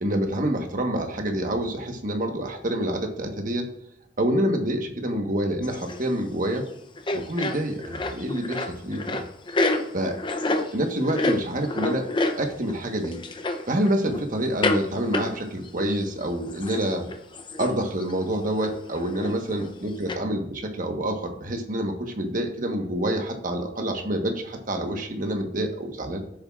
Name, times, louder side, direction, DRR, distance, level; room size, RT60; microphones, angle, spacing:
voice 1, 0.0-3.7 4.2-6.7 7.1-9.2 9.9-10.2 10.5-12.1 12.4-13.2 13.7-17.1 17.6-26.2, right 1 dB, 45° right, 4 dB, 1.3 m, -27 dB
sound 1, 5.6-6.2 6.5-6.7 7.0-12.8 13.0-14.2 14.6-14.9 15.1-16.0 16.2-16.3 16.5-17.7 18.0-18.2 18.6-19.7 20.1-20.2, left 2 dB, 25° left, 0.6 m, -28 dB
13.0 x 7.1 x 2.4 m, 0.75 s
head